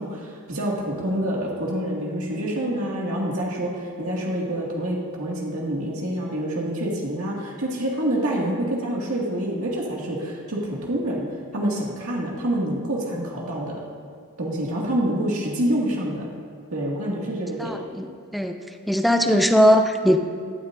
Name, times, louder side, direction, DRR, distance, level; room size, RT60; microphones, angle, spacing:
voice 1, 0.0-11.2 11.5-13.8 14.4-16.3 16.7-17.7, right 1 dB, 70° right, -4 dB, 2.2 m, -27 dB
voice 2, 17.6-18.6 18.9-20.2, equal, ahead, 5 dB, 0.7 m, -19 dB
17.5 x 12.5 x 2.7 m, 2.1 s
head